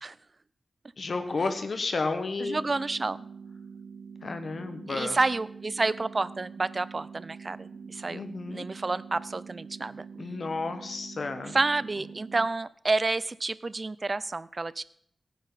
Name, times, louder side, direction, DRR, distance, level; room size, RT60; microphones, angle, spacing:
voice 1, 1.0-2.8 4.2-5.2 8.1-8.6 10.2-11.6, left 3 dB, 60° left, 8 dB, 1.4 m, -32 dB
voice 2, 2.4-3.3 4.9-8.2 8.5-10.0 11.5-14.8, right 3 dB, 40° right, 18 dB, 0.5 m, -29 dB
sound 1, 2.5-12.5, right 6 dB, 75° right, 1.0 m, -45 dB
17.0 x 9.4 x 4.1 m, 0.65 s
wide cardioid pair, 95°, 0 cm